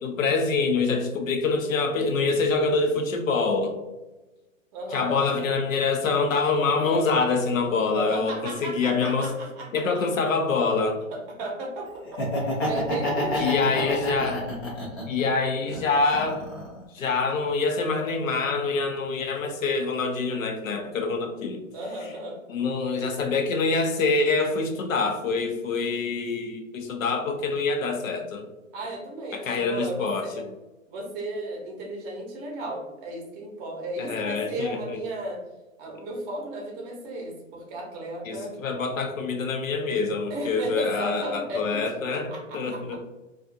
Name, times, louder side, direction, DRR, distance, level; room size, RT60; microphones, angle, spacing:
voice 1, 0.0-3.8 4.9-9.3 9.7-11.0 13.4-14.5 15.1-16.4 16.9-21.6 22.5-28.4 29.3-30.4 34.0-35.0 38.3-43.0, left 4 dB, 75° left, 4 dB, 0.7 m, -25 dB
voice 2, 4.7-5.5 7.9-9.8 11.1-12.0 12.4-14.0 21.7-22.4 28.7-30.4 30.9-35.4 35.8-38.5 40.3-43.0, right 1 dB, 30° right, -1 dB, 0.7 m, -35 dB
Laughter, 12.0-15.2 15.7-16.8, left 1 dB, 20° left, 0.3 m, -29 dB
2.4 x 2.4 x 2.5 m, 1.1 s
hypercardioid pair, 125°, 41 cm